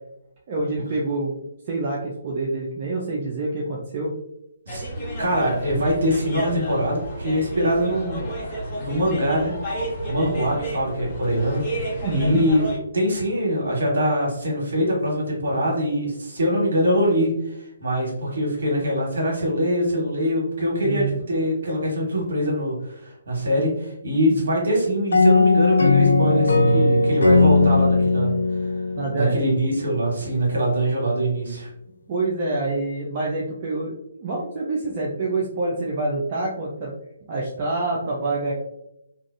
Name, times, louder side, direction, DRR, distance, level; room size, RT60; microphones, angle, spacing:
voice 1, 0.5-4.1 12.0-12.4 20.8-21.2 24.3-24.4 29.0-29.5 32.1-36.9 37.3-38.5, right 2 dB, 40° right, -3 dB, 0.5 m, -26 dB
sound 1, 4.7-12.8, right 1 dB, 25° left, 1.0 m, -31 dB
voice 2, 5.2-9.5 10.1-11.6 12.1-12.6 12.9-28.3 29.1-31.7, equal, 65° right, -3 dB, 1.4 m, -23 dB
sound 2, 25.1-29.8, left 3 dB, 80° left, 0.4 m, -18 dB
2.5 x 2.4 x 2.5 m, 0.81 s
figure-of-eight pair, 140°, 0 cm